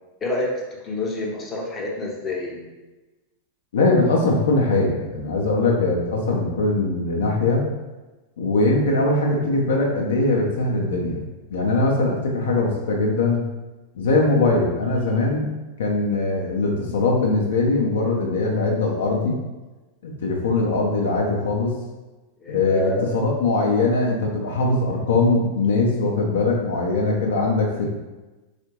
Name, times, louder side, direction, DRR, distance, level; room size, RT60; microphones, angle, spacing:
voice 1, 0.8-2.7 22.4-23.2, left 2 dB, 20° left, -1 dB, 0.6 m, -27 dB
voice 2, 3.7-7.7 8.4-11.2 11.5-13.4 13.9-15.5 15.8-19.4 20.0-21.7 22.5-27.9, left 2 dB, 60° left, -1 dB, 0.5 m, -21 dB
3.6 x 2.5 x 2.9 m, 1.1 s
figure-of-eight pair, 90°, 0 cm